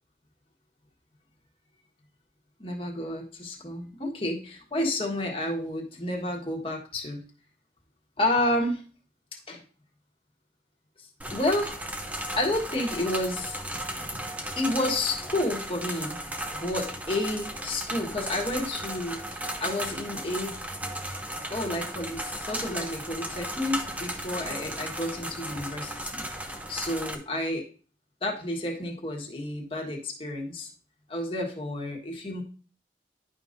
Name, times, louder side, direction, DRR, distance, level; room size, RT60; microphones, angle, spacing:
voice 1, 2.6-7.2 8.2-8.8 9.5-9.6 11.3-11.8 12.4-13.6 14.6-16.2 16.5-20.6 21.5-27.7 28.2-30.7 31.1-32.4, left 1 dB, 30° left, 0 dB, 1.5 m, -30 dB
sound 1, 11.2-27.1, right 1 dB, 10° right, 0.7 m, -35 dB
11.0 x 5.2 x 2.7 m, 0.38 s
head